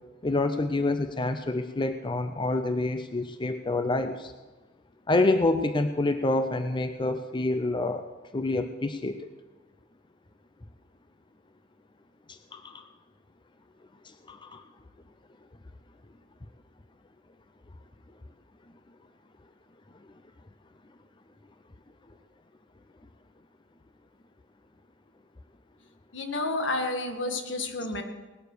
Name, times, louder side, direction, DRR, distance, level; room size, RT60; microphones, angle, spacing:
voice 1, 0.2-4.3 5.1-8.1 8.3-9.3 12.3-12.8 14.0-14.6, left 2 dB, 25° left, 9 dB, 0.6 m, -27 dB
voice 2, 26.1-28.0, left 2 dB, 75° left, 5 dB, 1.9 m, -30 dB
19.0 x 9.3 x 6.7 m, 1.2 s
head